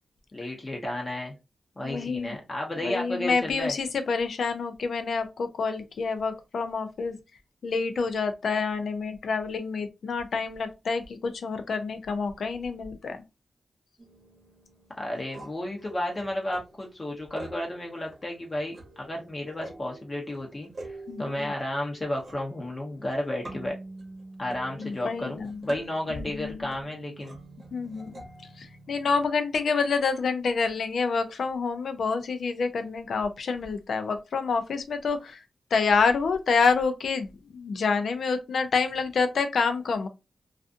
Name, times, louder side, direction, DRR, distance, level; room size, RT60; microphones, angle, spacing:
voice 1, 0.3-1.4 1.8-3.8 15.0-23.7 24.4-27.4, left 1 dB, 35° left, 0.8 m, -32 dB
voice 2, 1.8-2.3 2.8-7.2 7.6-13.2 21.1-21.4 24.8-25.6 26.1-26.7 27.7-28.2 28.6-35.4 35.7-40.1, left 4 dB, 80° left, 0.4 m, -28 dB
sound 1, 14.0-29.2, right 2 dB, 50° right, 0.8 m, -46 dB
2.4 x 2.4 x 2.5 m
cardioid pair, 75°, 0 cm